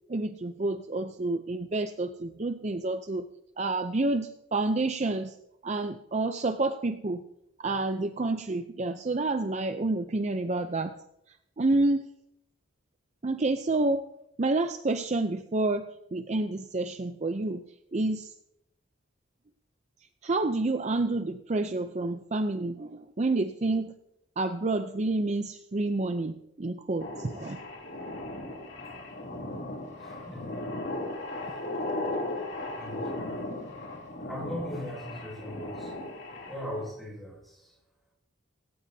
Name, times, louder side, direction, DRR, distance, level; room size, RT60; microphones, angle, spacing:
voice 1, 0.1-3.3 3.6-5.3 5.6-7.2 7.6-10.9 11.6-12.0 13.2-14.0 14.4-17.6 17.9-18.3 20.2-23.9 24.4-27.6, right 2 dB, 35° right, 8 dB, 0.5 m, -29 dB
sound 1, 27.0-36.9, left 2 dB, 60° left, 3.0 m, -37 dB
voice 2, 30.0-30.5 31.4-31.6 32.8-33.4 34.2-36.0 36.5-37.8, left 1 dB, ahead, -4 dB, 6.7 m, -39 dB
18.0 x 17.5 x 2.8 m, 0.82 s
head